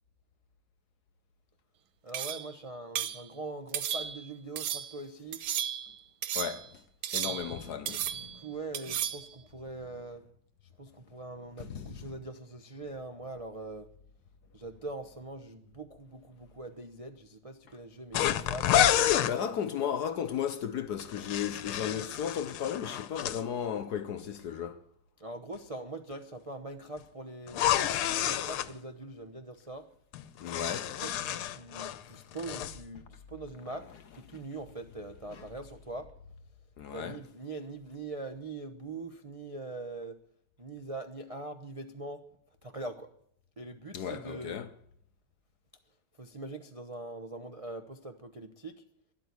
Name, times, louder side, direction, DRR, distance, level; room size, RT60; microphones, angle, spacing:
voice 1, 2.0-5.4 7.2-7.4 8.1-10.2 10.8-13.9 14.5-19.5 25.2-27.6 28.2-29.9 31.0-33.9 34.1-36.1 36.9-40.2 40.6-42.2 42.6-43.1 43.6-44.6 46.2-48.7, right 2 dB, 35° right, 0.5 m, -42 dB
sound 1, 2.1-2.5 2.9-3.2 3.7-4.3 4.6-4.9 5.3-5.9 6.2-6.7 7.0-7.6 7.9-8.4 8.7-9.3, right 10 dB, 70° right, 1.6 m, -34 dB
voice 2, 6.3-6.7 7.1-8.5 11.6-12.1 19.2-24.8 30.4-30.9 35.3-35.4 36.8-37.2 43.9-44.7, left 8 dB, 60° left, 1.2 m, -35 dB
sound 2, 18.1-19.3 21.0-23.4 27.5-28.7 30.1-32.0 32.3-32.8, left 11 dB, 85° left, 1.7 m, -29 dB
12.5 x 11.5 x 9.4 m
omnidirectional pair, 2.3 m